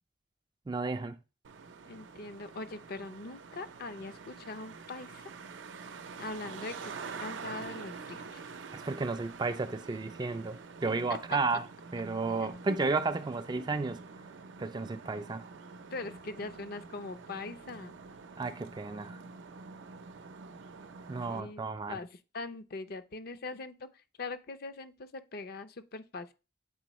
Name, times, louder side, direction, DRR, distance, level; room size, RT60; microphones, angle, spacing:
voice 1, 0.7-1.2 8.7-11.7 11.9-14.0 14.6-15.5 18.4-19.2 21.1-22.0, right 3 dB, 25° right, 0.3 m, -33 dB
Traffic noise roadway noise, 1.4-21.4, right 5 dB, 80° right, 0.6 m, -47 dB
voice 2, 1.9-5.2 6.2-8.5 10.9-11.2 12.4-12.8 13.6-13.7 15.9-17.9 21.3-23.9 24.2-26.3, left 3 dB, 55° left, 0.5 m, -42 dB
7.7 x 4.1 x 3.0 m
head